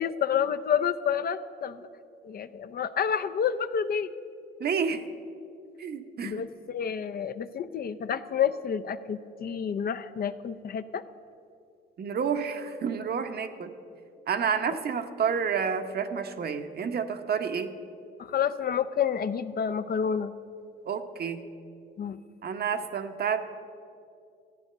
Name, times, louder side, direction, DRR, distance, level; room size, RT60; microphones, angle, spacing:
voice 1, 0.0-1.9 2.2-4.1 6.2-11.0 18.2-20.3 22.0-22.2, left 8 dB, 50° left, 11 dB, 0.6 m, -29 dB
voice 2, 4.6-5.0 5.8-6.4 12.0-13.7 14.3-17.7 20.9-21.4 22.4-23.4, right 6 dB, 50° right, 7 dB, 0.9 m, -29 dB
14.0 x 9.2 x 6.7 m, 2.5 s
cardioid pair, 90°, 20 cm